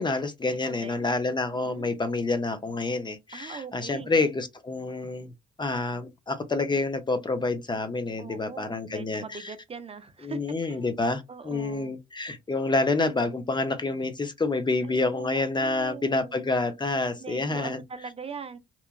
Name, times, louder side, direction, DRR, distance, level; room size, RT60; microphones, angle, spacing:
voice 1, 0.0-5.3 5.6-9.5 10.2-17.8, left 3 dB, 25° left, 0.5 m, -28 dB
voice 2, 0.6-1.1 1.5-1.9 3.3-4.1 8.2-10.4 10.7-10.9 11.3-12.0 14.8-16.3 17.2-18.6, right 5 dB, 30° right, 0.5 m, -41 dB
2.9 x 2.2 x 2.3 m
cardioid pair, 90°, 20 cm